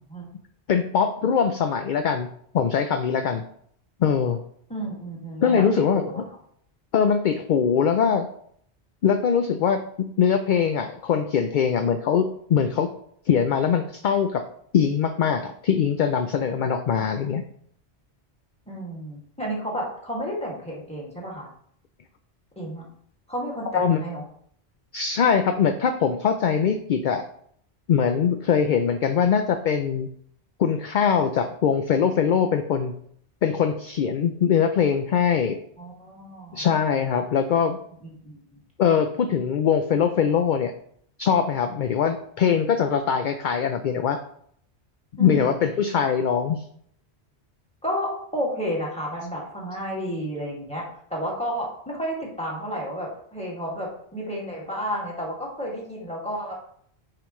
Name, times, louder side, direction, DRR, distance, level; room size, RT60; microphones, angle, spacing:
voice 1, 0.7-2.3 2.5-3.4 4.0-4.4 5.4-6.0 6.9-8.3 9.0-12.9 13.3-14.4 14.7-17.4 23.7-24.0 24.9-27.2 27.9-30.1 30.6-32.9 33.4-35.6 36.5-37.8 38.8-40.7 41.2-44.2 45.2-46.6, left 7 dB, 60° left, 7 dB, 0.6 m, -22 dB
voice 2, 4.7-5.6 5.9-6.2 18.7-21.5 22.6-22.8 23.3-24.2 35.8-36.6 38.0-38.6 45.2-45.5 45.9-46.1 47.8-50.8 51.1-56.5, equal, 5° left, -3 dB, 2.0 m, -31 dB
8.9 x 5.0 x 3.1 m, 0.65 s
omnidirectional pair, 1.1 m